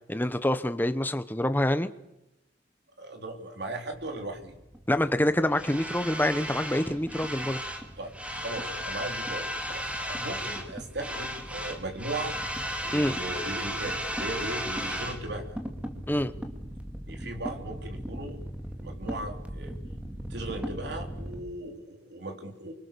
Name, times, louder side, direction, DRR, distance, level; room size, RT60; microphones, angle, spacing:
voice 1, 0.1-1.9 4.9-7.6 12.9-13.1 16.1-16.3, left 1 dB, 10° left, 1.0 m, -26 dB
voice 2, 3.0-4.5 8.0-8.1 8.3-12.4 12.8-15.6 17.1-18.4 18.8-19.8 20.3-22.7, right 2 dB, 60° right, 3.8 m, -37 dB
sound 1, 3.9-21.4, equal, 5° right, 2.3 m, -36 dB
29.0 x 24.5 x 7.0 m
head